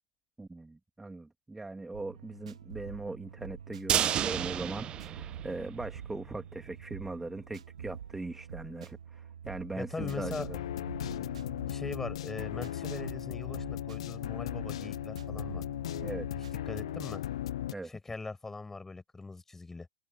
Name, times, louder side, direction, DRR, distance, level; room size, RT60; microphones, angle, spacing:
voice 1, 0.4-10.6 16.0-16.3 17.7-17.9, right 2 dB, 5° right, 1.9 m, -40 dB
sound 1, 1.9-17.1, right 8 dB, 70° right, 1.9 m, -47 dB
sound 2, 3.9-6.0 6.4-6.5 6.8-6.9, right 10 dB, 25° right, 0.6 m, -31 dB
voice 2, 9.7-10.5 11.7-15.6 16.7-17.2 17.8-19.9, left 3 dB, 10° left, 5.5 m, -41 dB
sound 3, 10.0-17.7, left 12 dB, 60° left, 0.6 m, -37 dB
figure-of-eight pair, 95°, 3 cm